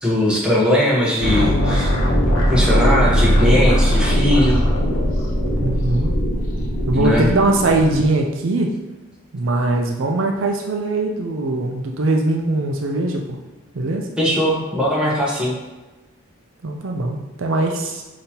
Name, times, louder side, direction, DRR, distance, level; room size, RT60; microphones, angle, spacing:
voice 1, 0.0-1.9 2.5-4.6 6.9-7.3 14.2-15.5, left 1 dB, 5° right, -6 dB, 1.0 m, -19 dB
sound 1, 1.2-8.0, equal, 75° left, 0.9 m, -19 dB
voice 2, 5.6-6.1 6.9-8.7 9.3-13.4 13.7-14.1 16.6-18.0, right 2 dB, 65° right, 1 dB, 0.5 m, -21 dB
5.2 x 2.9 x 2.8 m, 1.2 s
head